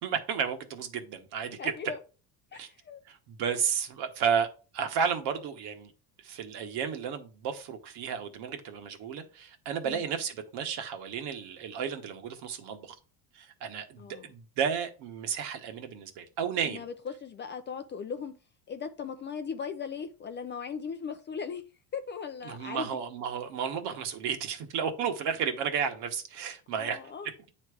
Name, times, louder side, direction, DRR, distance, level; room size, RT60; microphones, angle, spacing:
voice 1, 0.0-1.7 2.5-2.7 3.1-4.5 4.7-5.9 6.2-12.9 13.3-16.8 22.4-27.0, right 7 dB, 60° right, 1.4 m, -32 dB
voice 2, 1.6-2.0 2.5-3.0 3.5-3.6 9.8-10.0 14.0-14.3 16.6-18.4 18.7-21.6 21.9-23.0 26.7-27.3, left 6 dB, 25° left, 0.4 m, -38 dB
9.0 x 3.3 x 4.9 m
cardioid pair, 125°, 45 cm